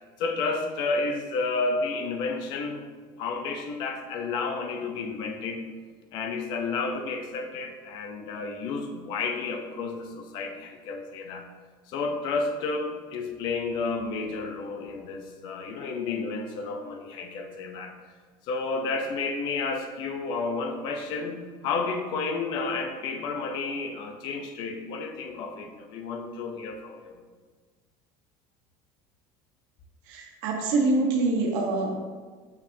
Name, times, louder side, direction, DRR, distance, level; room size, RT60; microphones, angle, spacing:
voice 1, 0.2-2.8 3.2-5.7 6.1-11.5 11.9-17.9 18.4-27.2, left 4 dB, 50° left, 5 dB, 0.7 m, -31 dB
voice 2, 30.1-32.0, right 3 dB, 85° right, 0 dB, 1.2 m, -25 dB
6.5 x 5.7 x 2.7 m, 1.5 s
cardioid pair, 180°, 10 cm